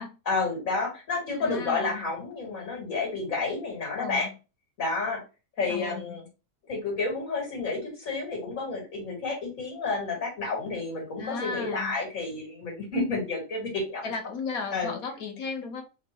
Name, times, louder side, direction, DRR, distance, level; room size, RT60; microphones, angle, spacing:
voice 1, 0.3-4.3 4.8-5.2 5.6-6.3 6.7-14.1 14.7-14.9, left 3 dB, 70° left, 2.3 m, -30 dB
voice 2, 1.4-2.1 4.0-4.3 5.7-6.2 11.2-12.0 14.0-15.8, left 4 dB, 85° left, 1.4 m, -35 dB
3.6 x 2.3 x 4.3 m
omnidirectional pair, 1.5 m